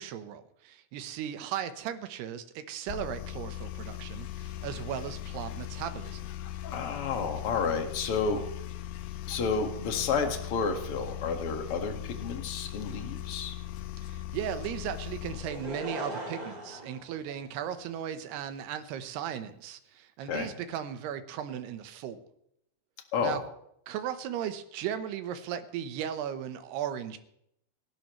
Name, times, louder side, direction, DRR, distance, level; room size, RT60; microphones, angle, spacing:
voice 1, 0.0-6.3 14.0-22.2 23.2-23.4 23.9-27.2, right 9 dB, 70° right, 9 dB, 2.8 m, -36 dB
sound 1, 2.9-15.8, left 13 dB, 85° left, 2.1 m, -39 dB
voice 2, 6.6-8.4 9.3-13.5 20.3-20.5 23.1-23.4, left 5 dB, 55° left, 4 dB, 1.5 m, -31 dB
Laughter / Crowd, 15.3-17.9 18.6-18.7, equal, 20° right, 3.0 m, -39 dB
28.5 x 12.0 x 3.2 m, 0.74 s
omnidirectional pair, 5.4 m